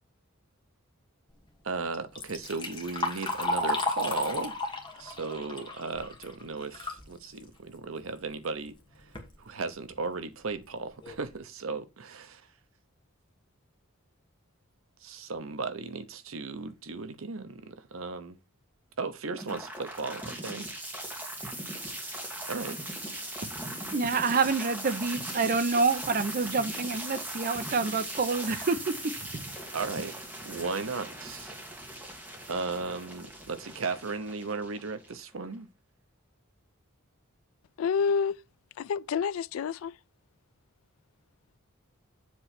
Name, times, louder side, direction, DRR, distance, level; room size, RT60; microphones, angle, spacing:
voice 1, 1.6-4.5 5.0-8.7 9.4-12.4 15.0-18.3 19.0-20.7 22.5-22.8 29.7-30.2 30.4-31.5 32.5-35.7, right 4 dB, 75° right, 0.8 m, -36 dB
Liquid, 1.9-7.1 7.5-7.6 8.4-8.5 9.0-9.3 9.9-10.0 10.5-10.6 11.0-11.3, left 2 dB, 25° left, 1.5 m, -33 dB
sound 1, 19.4-35.4, right 1 dB, 10° right, 1.6 m, -39 dB
voice 2, 23.9-29.5, right 4 dB, 45° right, 0.7 m, -28 dB
voice 3, 37.8-38.4 38.8-39.9, left 6 dB, 80° left, 0.3 m, -28 dB
7.4 x 3.3 x 5.8 m
head